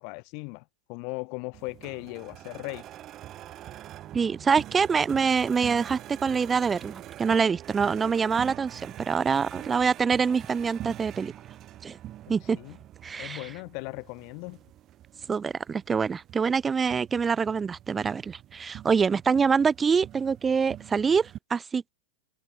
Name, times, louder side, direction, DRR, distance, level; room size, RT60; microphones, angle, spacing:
voice 1, 0.0-2.9 12.5-12.8 13.2-14.6, left 36 dB, 50° left, 0.5 m, -38 dB
sound 1, 1.5-21.4, right 13 dB, 35° right, 2.0 m, -45 dB
voice 2, 4.1-11.3 11.8-12.0 12.3-12.6 13.0-13.5 15.3-21.9, right 5 dB, 20° right, 0.6 m, -25 dB
hypercardioid pair, 115°, 0 cm